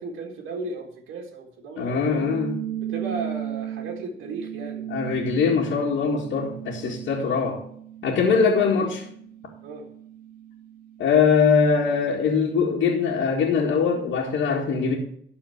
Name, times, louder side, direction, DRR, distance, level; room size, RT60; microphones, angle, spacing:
voice 1, 0.0-2.3 2.8-4.9 6.8-7.0 7.2-7.5 8.6-8.9 9.6-9.9, right 3 dB, 80° right, 0 dB, 1.9 m, -35 dB
voice 2, 1.8-2.6 4.9-7.6 8.0-9.0 11.0-15.0, left 5 dB, 75° left, -4 dB, 1.9 m, -22 dB
sound 1, 2.1-13.0, right 11 dB, 50° right, 2.0 m, -37 dB
12.5 x 4.3 x 7.1 m, 0.65 s
cardioid pair, 90°, 20 cm